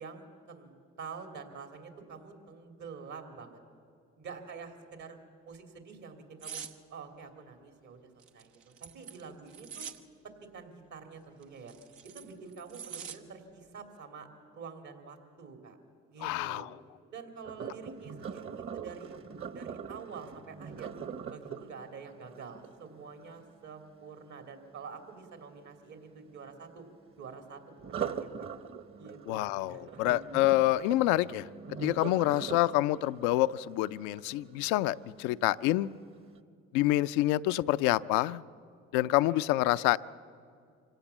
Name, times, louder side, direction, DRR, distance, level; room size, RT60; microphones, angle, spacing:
voice 1, 0.0-3.6 4.2-5.2 5.4-6.6 6.9-9.8 10.5-11.7 12.1-14.3 14.5-15.8 16.1-16.7 17.1-19.2 19.5-20.9 21.3-26.8 27.2-28.3 29.0-30.2 39.2-39.5, right 5 dB, 70° right, 3.1 m, -47 dB
sound 1, 6.4-6.7 8.2-10.0 11.4-13.2 13.6-13.8, right 7 dB, 90° right, 1.0 m, -44 dB
voice 2, 16.2-16.7 29.3-31.5 31.8-35.9 36.7-38.4 38.9-40.0, left 16 dB, 90° left, 0.5 m, -27 dB
Sink (filling or washing), 17.4-23.4 27.8-34.8 35.3-35.7 36.1-36.2, right 7 dB, 45° right, 1.2 m, -42 dB
25.5 x 17.0 x 7.2 m
supercardioid pair, 60°, 29 cm